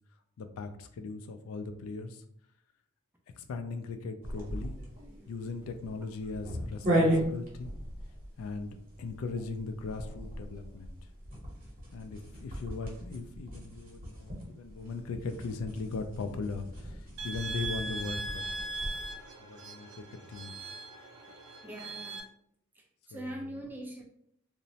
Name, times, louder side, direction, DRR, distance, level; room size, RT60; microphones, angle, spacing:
voice 1, 0.4-2.2 3.4-4.8 5.3-7.7 8.4-10.9 11.9-18.4 19.4-20.5 23.1-23.2, left 4 dB, 75° left, 8 dB, 0.3 m, -39 dB
sound 1, 4.2-19.1, right 1 dB, 40° right, 0.8 m, -36 dB
sound 2, 17.2-22.2, right 2 dB, 75° right, 0.5 m, -40 dB
voice 2, 21.6-22.2 22.7-24.0, right 1 dB, 10° right, 0 dB, 0.3 m, -42 dB
2.9 x 2.0 x 2.7 m, 0.71 s
head